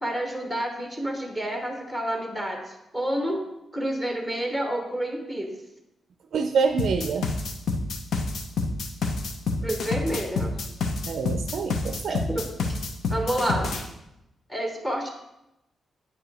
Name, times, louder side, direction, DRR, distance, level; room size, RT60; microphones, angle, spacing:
voice 1, 0.0-3.4 3.7-5.5 9.6-10.5 12.3-12.8 13.1-13.7 14.5-15.1, right 1 dB, 10° left, 2 dB, 1.0 m, -29 dB
voice 2, 6.3-7.3 11.1-12.2, right 5 dB, 70° right, 6 dB, 0.4 m, -26 dB
sound 1, 6.8-13.8, left 3 dB, 75° left, 0.7 m, -28 dB
8.4 x 4.8 x 3.3 m, 0.88 s
wide cardioid pair, 140°, 0 cm